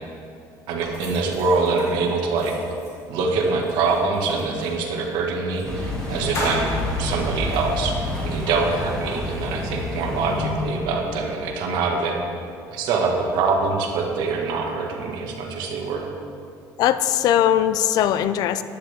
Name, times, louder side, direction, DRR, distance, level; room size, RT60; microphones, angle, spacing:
voice 1, 0.7-2.6 3.1-8.0 8.2-12.2 12.7-16.1, right 4 dB, 70° right, 1 dB, 1.8 m, -24 dB
sound 1, 0.8-4.8 5.5-5.7 5.9-8.0, left 1 dB, 40° left, 3.1 m, -36 dB
sound 2, 5.6-11.1, left 1 dB, 10° left, 2.4 m, -28 dB
voice 2, 16.8-18.6, left 11 dB, 55° left, 13 dB, 0.5 m, -20 dB
14.5 x 10.5 x 3.6 m, 2.5 s
cardioid pair, 165°, 8 cm